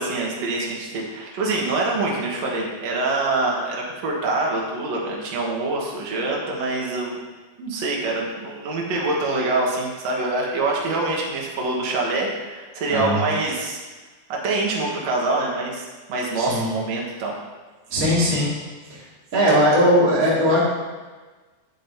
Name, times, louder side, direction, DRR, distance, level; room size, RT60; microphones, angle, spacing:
voice 1, 0.0-3.8 4.0-7.2 7.6-13.8 14.3-17.4, right 2 dB, 55° right, -2 dB, 2.4 m, -25 dB
voice 2, 12.9-13.2 16.4-16.7 17.9-18.5 18.9-19.0 19.3-20.6, equal, 25° right, -7 dB, 2.4 m, -19 dB
9.8 x 8.2 x 2.8 m, 1.3 s
omnidirectional pair, 4.1 m